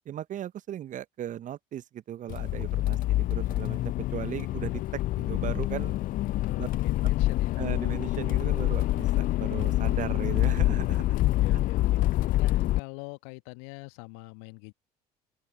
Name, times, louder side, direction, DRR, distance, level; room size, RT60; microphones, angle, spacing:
voice 1, 0.1-6.0 6.6-6.7 7.0-7.1 7.6-11.1 11.5-11.6, right 11 dB, 40° right, 0.9 m, -37 dB
Accelerating revving vroom, 2.3-12.8, left 16 dB, 45° left, 0.5 m, -26 dB
voice 2, 2.9-3.2 6.4-7.6 11.2-14.7, left 36 dB, 65° left, 1.6 m, -44 dB
open air
figure-of-eight pair, 60°, 20 cm